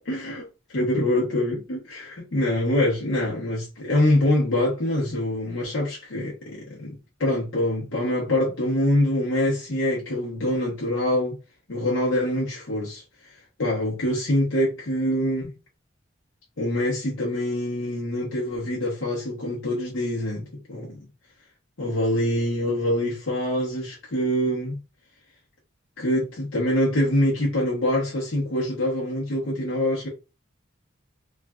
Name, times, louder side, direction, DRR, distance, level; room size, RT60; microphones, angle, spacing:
voice 1, 0.1-0.5 0.7-6.9 7.2-11.4 11.7-13.0 13.6-15.5 16.6-21.0 21.8-24.8 26.0-30.1, left 1 dB, 80° left, 0.8 m, -25 dB
3.2 x 2.4 x 2.3 m
head